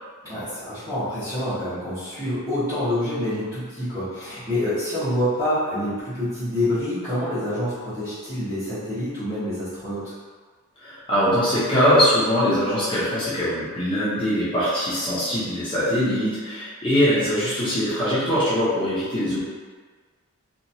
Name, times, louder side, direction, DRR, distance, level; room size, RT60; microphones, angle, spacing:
voice 1, 0.2-10.1, left 1 dB, 15° right, -20 dB, 1.1 m, -27 dB
voice 2, 10.8-19.4, equal, 20° left, -11 dB, 0.8 m, -22 dB
2.9 x 2.5 x 2.7 m, 1.5 s
head